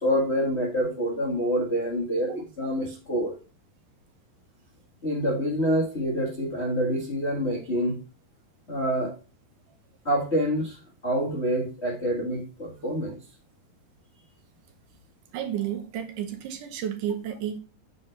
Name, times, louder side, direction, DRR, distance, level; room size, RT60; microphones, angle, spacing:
voice 1, 0.0-3.3 5.0-8.0 8.7-9.1 10.0-10.8 11.0-13.2, equal, 45° left, -4 dB, 0.8 m, -26 dB
voice 2, 15.3-17.6, right 10 dB, 70° right, 5 dB, 2.3 m, -31 dB
7.7 x 4.2 x 5.7 m, 0.35 s
omnidirectional pair, 4.1 m